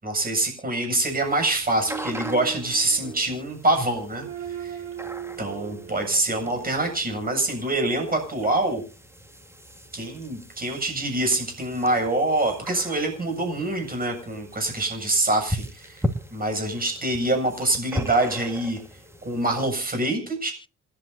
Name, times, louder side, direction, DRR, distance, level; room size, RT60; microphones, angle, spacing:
voice 1, 0.0-4.8 5.4-8.8 9.9-16.0 16.3-18.8 19.2-20.5, right 2 dB, 30° right, 4 dB, 7.5 m, -25 dB
sound 1, 1.0-19.8, equal, 10° right, 2.3 m, -39 dB
sound 2, 1.4-7.4 8.4-8.5, right 8 dB, 55° right, 4.3 m, -39 dB
28.0 x 11.5 x 2.7 m, 0.35 s
cardioid pair, 90°, 30 cm